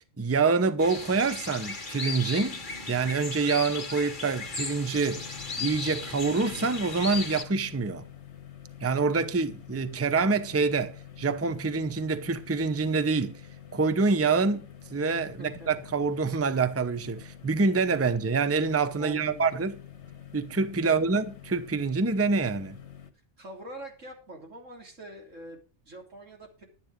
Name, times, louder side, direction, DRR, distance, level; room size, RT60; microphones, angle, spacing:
voice 1, 0.2-2.6 2.9-5.3 5.6-8.0 8.8-13.4 13.7-14.6 14.9-19.7 20.3-22.8, right 4 dB, 15° right, 0.6 m, -26 dB
sound 1, 0.8-7.4, left 4 dB, 40° left, 1.7 m, -36 dB
sound 2, 5.0-23.1, left 10 dB, 65° left, 1.5 m, -47 dB
voice 2, 15.3-15.8 19.0-19.5 20.8-20.9 23.4-25.6 25.9-26.6, right 1 dB, 90° right, 3.7 m, -44 dB
12.0 x 9.3 x 5.1 m
omnidirectional pair, 1.3 m